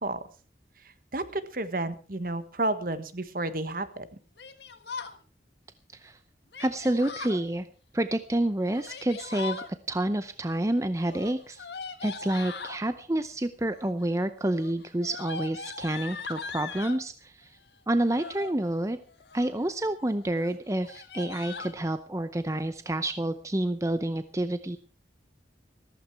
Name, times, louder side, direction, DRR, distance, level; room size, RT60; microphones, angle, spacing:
voice 1, 1.1-4.1, right 2 dB, 50° right, 12 dB, 1.4 m, -31 dB
Yell, 4.4-5.2 6.5-7.4 8.6-9.7 11.0-12.8 13.6-14.1 14.4-17.0 17.9-18.5 19.1-19.6 20.0-20.1 20.4-20.5 20.8-21.7, left 5 dB, 70° left, 1.6 m, -40 dB
voice 2, 6.6-7.7 7.9-11.7 12.0-17.5 17.9-19.0 19.3-24.8, right 1 dB, 15° right, 11 dB, 0.6 m, -29 dB
14.5 x 14.5 x 4.6 m, 0.37 s
head